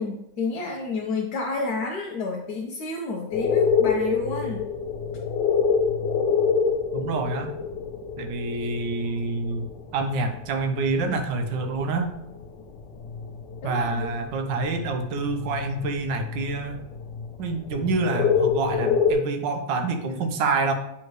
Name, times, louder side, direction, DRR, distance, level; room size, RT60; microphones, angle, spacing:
voice 1, 0.0-4.7 13.6-14.1, left 3 dB, 65° left, -2 dB, 1.3 m, -30 dB
sound 1, 3.3-10.2 10.6-11.2 11.5-12.1 12.4-19.1, left 6 dB, 85° left, 1.4 m, -26 dB
voice 2, 6.9-7.5 8.2-12.1 13.6-16.8 17.4-20.7, right 3 dB, 80° right, 6 dB, 1.4 m, -27 dB
8.7 x 3.5 x 3.1 m, 0.83 s
omnidirectional pair, 1.9 m